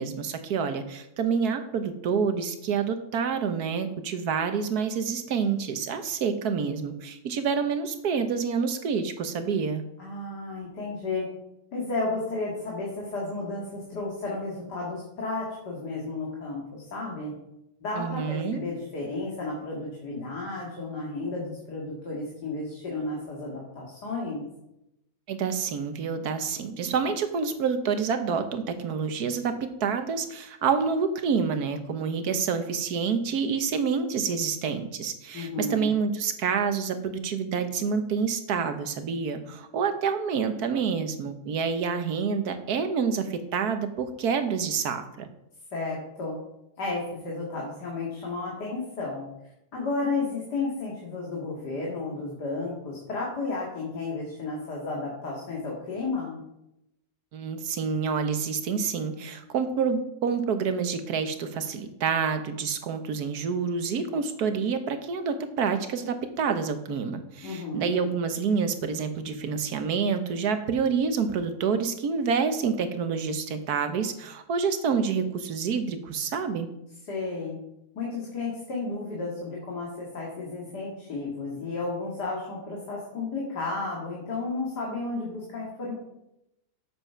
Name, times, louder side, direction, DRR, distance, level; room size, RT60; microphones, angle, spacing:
voice 1, 0.0-9.8 18.0-18.6 25.3-45.3 57.3-76.7, right 6 dB, 65° right, 8 dB, 1.4 m, -28 dB
voice 2, 10.0-11.3 11.7-17.3 17.8-24.4 35.3-35.9 45.7-46.3 46.8-49.2 49.7-56.4 67.4-68.0 77.1-77.6 77.9-85.9, left 3 dB, 70° left, -3 dB, 2.7 m, -33 dB
8.2 x 7.6 x 5.7 m, 0.84 s
omnidirectional pair, 1.8 m